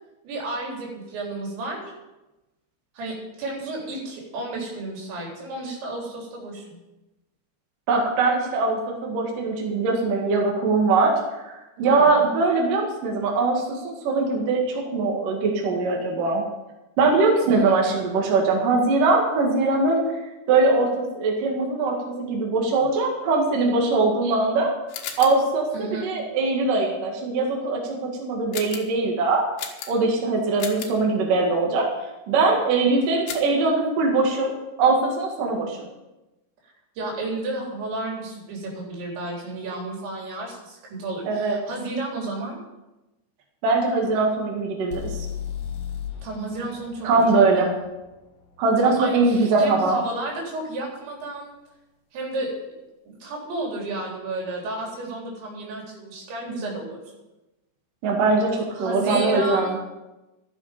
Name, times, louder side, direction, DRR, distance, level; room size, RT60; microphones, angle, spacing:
voice 1, 0.2-1.9 3.0-6.8 11.8-12.3 17.5-18.1 25.7-26.1 37.0-42.6 46.2-47.7 48.8-51.5 52.1-52.5 53.1-57.0 58.7-59.8, right 2 dB, 80° right, -2 dB, 5.9 m, -32 dB
voice 2, 7.9-11.2 11.8-16.4 17.0-20.2 20.5-24.7 25.2-29.4 29.9-31.9 32.3-34.5 34.8-35.9 41.3-41.6 43.6-45.2 47.0-47.7 48.6-50.0 58.0-59.8, right 3 dB, 55° right, -1 dB, 3.3 m, -21 dB
sound 1, 24.9-25.5 28.5-29.0 29.6-30.2 30.6-31.0 33.3-33.6, left 8 dB, 75° left, 3.4 m, -35 dB
sound 2, 44.9-48.8, left 8 dB, 60° left, 2.7 m, -35 dB
13.5 x 13.0 x 5.1 m, 1.0 s
omnidirectional pair, 5.2 m